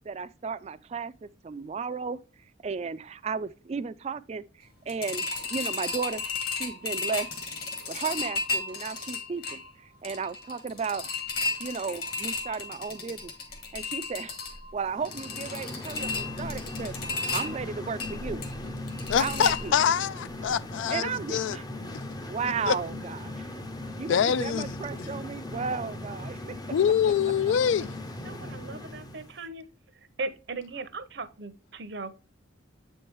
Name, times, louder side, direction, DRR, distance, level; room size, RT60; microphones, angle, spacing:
voice 1, 0.1-2.2 2.6-6.2 6.5-7.3 7.9-11.1 11.6-13.3 13.7-14.4 14.7-16.9 17.3-18.4 19.2-19.7 20.9-21.7 22.2-23.5 24.0-26.6, right 5 dB, 35° right, 0.3 m, -34 dB
sound 1, 4.9-20.1 20.4-20.5 20.9-21.0, left 4 dB, 50° left, 1.4 m, -34 dB
sound 2, 14.8-29.4, left 1 dB, 20° left, 0.5 m, -39 dB
voice 2, 19.1-21.6 22.7-22.8 24.1-24.7 26.7-27.9, left 8 dB, 80° left, 0.3 m, -25 dB
voice 3, 28.2-29.6 30.2-32.1, right 3 dB, 60° right, 0.7 m, -38 dB
7.8 x 4.6 x 3.0 m
head